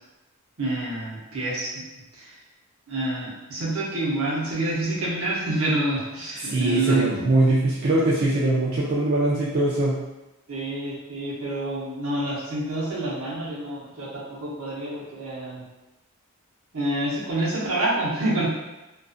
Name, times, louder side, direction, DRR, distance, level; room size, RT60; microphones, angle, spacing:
voice 1, 0.6-1.8 2.2-2.3 2.9-7.2 10.5-15.6 16.7-18.5, right 2 dB, 70° right, -5 dB, 0.8 m, -27 dB
voice 2, 6.4-10.0, right 2 dB, 50° right, -7 dB, 0.4 m, -22 dB
2.5 x 2.4 x 2.4 m, 1.0 s
head